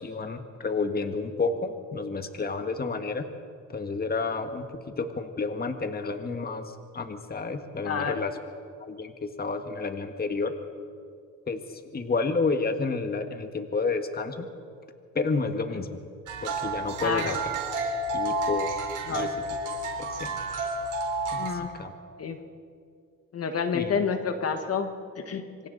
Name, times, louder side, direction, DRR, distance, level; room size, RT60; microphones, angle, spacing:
voice 1, 0.0-3.3 3.7-8.3 8.9-10.5 11.5-11.6 11.9-14.5 15.1-16.0 16.4-17.4 18.1-18.7 19.1-19.3 20.0-20.4 21.3-21.9 23.7-23.9, left 4 dB, 30° left, 7 dB, 1.7 m, -30 dB
voice 2, 7.8-8.2 15.7-15.8 17.0-17.4 19.0-19.3 21.4-21.7 22.2-22.4 23.3-25.7, left 6 dB, 50° left, 7 dB, 1.6 m, -29 dB
sound 1, 16.3-21.5, right 2 dB, 85° right, 4.0 m, -30 dB
26.5 x 24.5 x 4.1 m, 2.2 s
cardioid pair, 90°, 30 cm